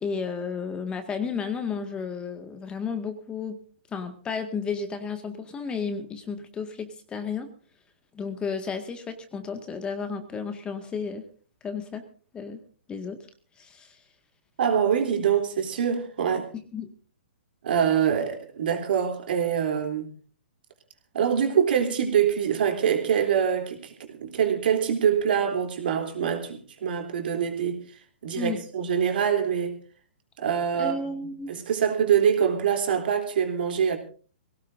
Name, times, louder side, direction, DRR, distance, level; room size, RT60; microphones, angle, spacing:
voice 1, 0.0-3.6 3.9-7.5 8.1-11.2 11.6-12.0 12.3-12.6 12.9-13.2 13.6-14.0 16.7-16.9 28.4-28.6 30.8-31.5, left 5 dB, 15° left, 7 dB, 1.8 m, -32 dB
voice 2, 14.6-16.5 17.6-20.1 21.1-27.8 28.2-29.7 30.4-31.1 31.5-34.0, right 8 dB, 60° right, 4 dB, 3.3 m, -24 dB
24.5 x 17.5 x 2.6 m, 0.39 s
hypercardioid pair, 125°, 6 cm